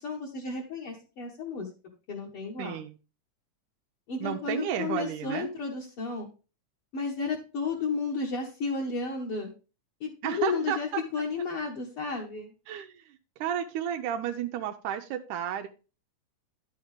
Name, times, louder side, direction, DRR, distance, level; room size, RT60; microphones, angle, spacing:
voice 1, 0.0-1.7 2.1-2.8 4.1-6.3 6.9-9.5 10.0-12.5, left 4 dB, 55° left, -3 dB, 2.0 m, -33 dB
voice 2, 2.6-3.0 4.2-5.5 10.2-11.0 12.7-15.7, right 9 dB, 85° right, 5 dB, 2.2 m, -32 dB
10.5 x 6.4 x 3.5 m, 0.33 s
omnidirectional pair, 3.5 m